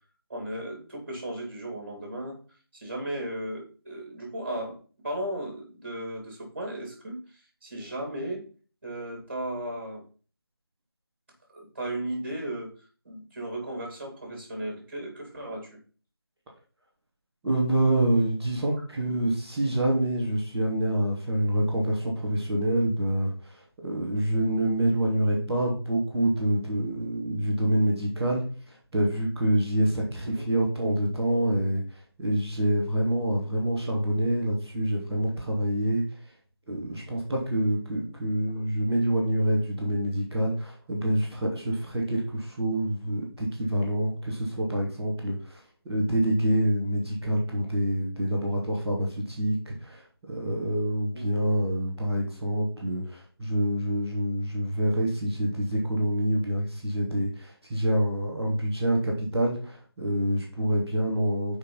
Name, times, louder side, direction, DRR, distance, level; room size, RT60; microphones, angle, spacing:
voice 1, 0.3-2.4 2.7-4.8 5.0-7.3 7.6-8.4 8.8-10.0 11.5-12.7 13.1-15.7 30.2-30.5 38.6-38.7 51.1-51.4, right 1 dB, 30° right, 1 dB, 3.7 m, -35 dB
voice 2, 17.4-36.0 36.7-45.6 45.8-50.0 50.3-61.6, right 1 dB, 5° right, -15 dB, 0.6 m, -26 dB
6.6 x 5.2 x 5.7 m, 0.39 s
figure-of-eight pair, 165°, 13 cm